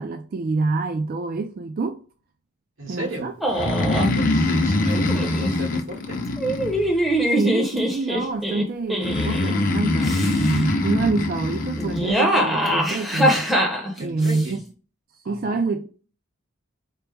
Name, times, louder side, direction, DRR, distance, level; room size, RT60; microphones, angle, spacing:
voice 1, 0.0-2.0 2.9-3.3 7.3-13.5 14.0-14.6 15.3-15.9, right 3 dB, 45° right, 0.3 m, -26 dB
voice 2, 2.8-3.3 3.9-6.2 14.0-14.6 15.2-15.6, right 1 dB, 80° right, 1.2 m, -34 dB
sound 1, 3.4-4.2 4.9-5.5 6.4-9.5 10.0-10.6 11.8-14.5, equal, ahead, 0.6 m, -23 dB
Breathing, 3.5-7.2 9.0-12.1, left 2 dB, 40° left, 0.6 m, -23 dB
4.5 x 2.0 x 3.3 m
head